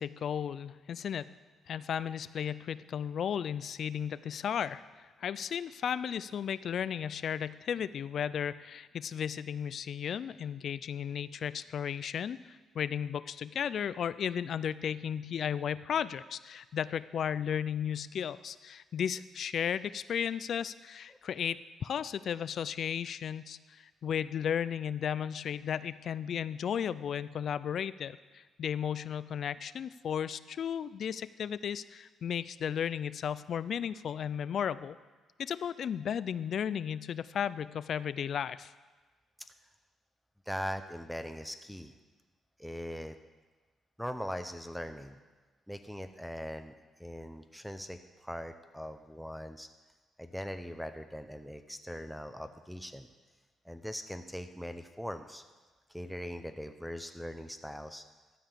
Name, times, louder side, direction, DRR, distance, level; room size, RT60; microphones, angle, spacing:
voice 1, 0.0-1.3 1.7-35.0 35.4-38.7, left 8 dB, 60° left, 16 dB, 0.3 m, -34 dB
voice 2, 40.5-41.9 42.6-43.2 44.0-45.2 45.7-46.7 47.0-49.7 50.2-53.1 53.6-55.4 55.9-58.0, equal, ahead, 7 dB, 0.6 m, -41 dB
12.5 x 5.0 x 7.4 m, 1.3 s
cardioid pair, 90°, 0 cm